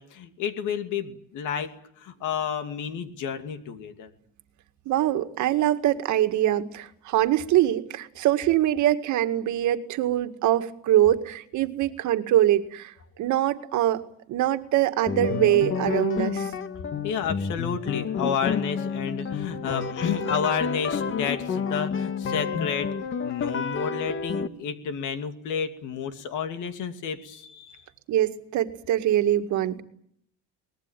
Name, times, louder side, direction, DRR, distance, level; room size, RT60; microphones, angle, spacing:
voice 1, 0.0-4.1 17.0-22.9 23.2-27.8, left 7 dB, 65° left, 8 dB, 2.6 m, -31 dB
voice 2, 4.9-12.9 13.2-14.0 14.3-16.5 28.1-29.8, right 13 dB, 60° right, 9 dB, 2.0 m, -23 dB
sound 1, 15.1-24.5, left 6 dB, 40° left, 1.5 m, -29 dB
24.5 x 20.5 x 9.1 m, 0.68 s
cardioid pair, 145°, 32 cm